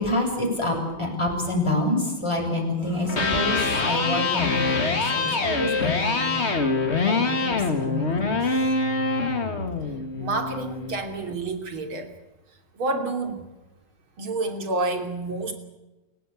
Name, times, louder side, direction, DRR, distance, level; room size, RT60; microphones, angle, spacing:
voice 1, 0.0-6.3 7.1-8.4, left 1 dB, 15° left, 1 dB, 7.0 m, -27 dB
Electric guitar, 3.0-11.1, left 3 dB, 30° left, 2.2 m, -25 dB
voice 2, 10.2-12.1 12.8-13.4 14.2-15.5, right 2 dB, 90° right, 5 dB, 3.7 m, -28 dB
30.0 x 16.0 x 8.6 m, 1.0 s
omnidirectional pair, 2.2 m